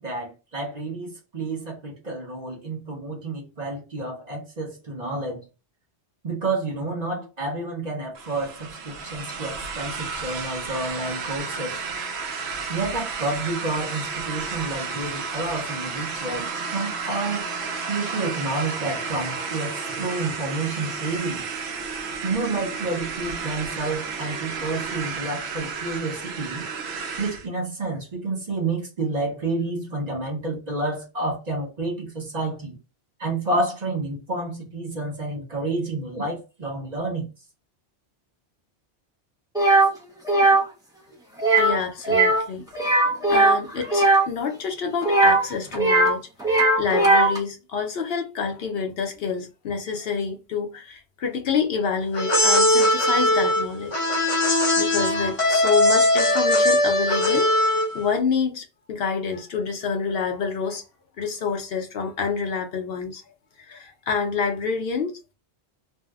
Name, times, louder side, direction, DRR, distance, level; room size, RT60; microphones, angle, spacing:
voice 1, 0.0-5.5 6.2-11.8 12.7-17.5 17.7-21.4 22.2-26.7 27.2-32.8 33.2-37.3, right 2 dB, 45° right, 0.7 m, -29 dB
sound 1, 8.1-27.5, right 5 dB, 75° right, 0.9 m, -32 dB
sound 2, 39.6-39.9 40.3-40.6 41.4-41.8 42.0-42.4 42.7-44.2 45.0-46.2 46.4-47.4, right 2 dB, 5° right, 0.4 m, -18 dB
voice 2, 41.6-42.6 43.2-53.9 54.2-60.8 61.2-63.2 63.7-65.1, left 5 dB, 65° left, 0.8 m, -28 dB
sound 3, 52.1-58.0, left 1 dB, 35° left, 0.7 m, -20 dB
2.6 x 2.0 x 3.4 m
omnidirectional pair, 1.1 m